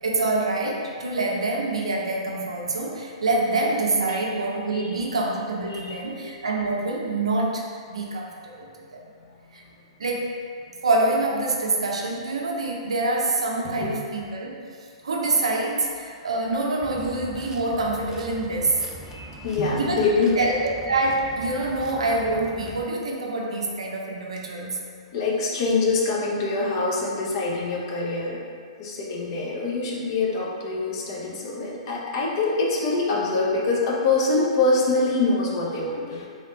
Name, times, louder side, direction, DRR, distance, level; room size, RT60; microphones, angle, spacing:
voice 1, 0.0-9.0 9.5-9.6 10.0-10.4 10.8-14.6 15.0-18.8 19.7-20.1 20.4-24.8, right 2 dB, 75° right, -2 dB, 0.7 m, -26 dB
voice 2, 13.6-14.0 19.1-20.4 25.1-28.4 28.8-36.3, left 3 dB, 50° left, -4 dB, 0.9 m, -25 dB
sound 1, 16.8-22.8, right 2 dB, 15° right, 0.3 m, -42 dB
3.4 x 2.5 x 4.2 m, 2.2 s
hypercardioid pair, 115°, 3 cm